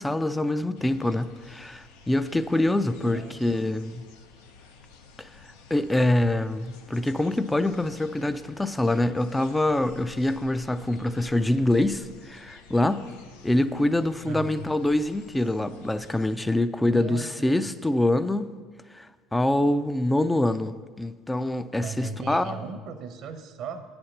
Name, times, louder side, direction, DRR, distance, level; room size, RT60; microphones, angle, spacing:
voice 1, 0.0-4.1 5.2-5.3 5.7-13.0 13.4-18.5 18.9-22.6, left 1 dB, 10° left, 0.4 m, -25 dB
sound 1, 0.7-16.4, left 4 dB, 85° left, 0.7 m, -51 dB
voice 2, 3.0-3.6 14.2-14.6 16.8-17.7 21.8-23.8, right 5 dB, 60° right, 0.7 m, -37 dB
8.6 x 4.3 x 6.6 m
supercardioid pair, 85°, 0 cm